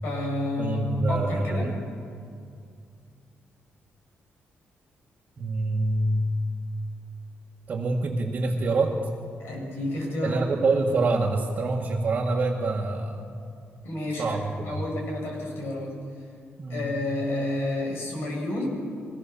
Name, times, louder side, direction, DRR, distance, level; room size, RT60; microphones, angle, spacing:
voice 1, 0.0-1.7 9.4-10.4 13.8-14.4 14.6-16.0 16.7-18.7, left 1 dB, 75° left, -1 dB, 7.2 m, -30 dB
voice 2, 0.6-1.7 5.4-6.3 7.7-9.0 10.2-13.2 14.2-14.8 16.6-16.9, right 3 dB, 40° right, -4 dB, 2.0 m, -26 dB
24.0 x 18.0 x 7.1 m, 2.3 s
wide cardioid pair, 150°, 4 cm